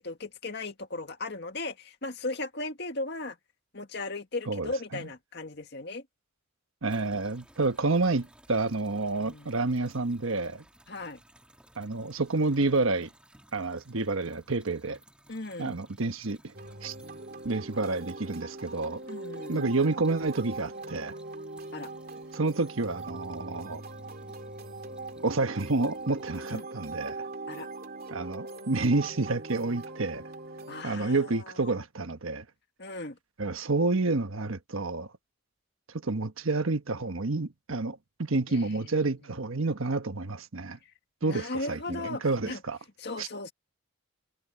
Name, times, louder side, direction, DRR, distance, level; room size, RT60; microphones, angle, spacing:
voice 1, 0.0-3.4 3.7-6.0 9.2-9.5 10.9-11.2 15.3-15.8 19.1-19.7 21.7-21.9 26.5-26.7 27.5-27.7 30.7-31.8 32.8-33.2 38.5-39.0 40.8-40.9 41.2-42.6 43.0-43.5, left 2 dB, 55° left, 2.0 m, -37 dB
voice 2, 4.5-5.1 6.8-10.6 11.8-13.1 13.5-15.0 15.6-16.5 16.8-16.9 17.4-19.0 19.5-21.1 22.3-23.8 25.2-27.2 28.1-30.2 30.8-32.4 33.4-35.1 36.0-40.8 41.2-42.8 43.2-43.3, right 3 dB, 75° right, 1.2 m, -29 dB
sound 1, 6.9-26.6, right 1 dB, 5° right, 3.1 m, -59 dB
sound 2, 16.5-30.8, right 2 dB, 45° right, 2.6 m, -41 dB
head